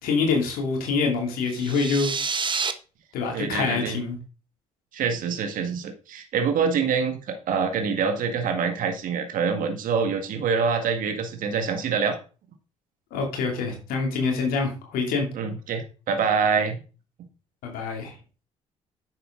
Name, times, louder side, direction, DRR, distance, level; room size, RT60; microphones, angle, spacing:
voice 1, 0.0-2.1 3.1-4.2 13.1-15.3 17.6-18.1, left 4 dB, 70° left, 2.9 m, -25 dB
sound 1, 1.5-2.7, right 5 dB, 30° right, 1.3 m, -28 dB
voice 2, 3.3-4.0 4.9-12.2 15.3-16.8, right 5 dB, 60° right, 1.7 m, -25 dB
10.0 x 7.9 x 3.9 m
hypercardioid pair, 50°, 16 cm